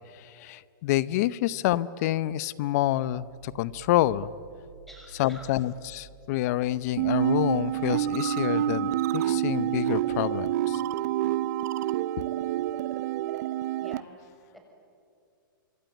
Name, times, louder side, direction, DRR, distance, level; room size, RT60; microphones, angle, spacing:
voice 1, 0.1-4.3 5.2-10.8, left 14 dB, 45° left, 19 dB, 0.7 m, -28 dB
sound 1, 2.8-8.2, right 4 dB, 80° right, 2.9 m, -51 dB
voice 2, 4.9-5.5 13.8-14.6, equal, ahead, 1 dB, 6.4 m, -49 dB
sound 2, 7.0-14.0, right 12 dB, 50° right, 0.6 m, -27 dB
26.0 x 22.0 x 9.1 m, 2.4 s
hypercardioid pair, 125°, 12 cm